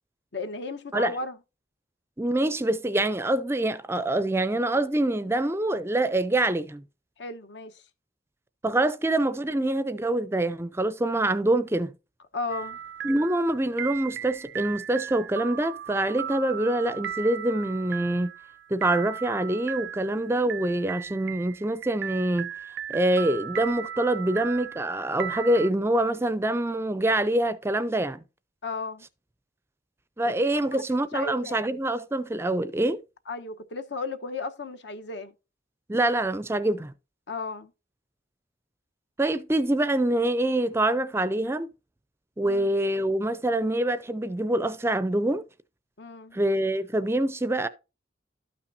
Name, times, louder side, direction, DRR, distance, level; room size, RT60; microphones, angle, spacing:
voice 1, 0.3-1.4 7.2-7.8 12.3-12.8 28.6-29.0 31.1-31.7 33.3-35.3 37.3-37.7 42.4-42.7 46.0-46.4, left 3 dB, 65° left, 0.9 m, -34 dB
voice 2, 2.2-6.8 8.6-11.9 13.0-18.3 18.7-22.5 22.9-28.2 30.2-33.0 35.9-36.9 39.2-41.7 42.4-45.4 46.3-47.7, right 1 dB, 15° right, 0.4 m, -25 dB
sound 1, 12.5-25.7, right 9 dB, 75° right, 0.4 m, -37 dB
12.5 x 5.8 x 2.6 m
head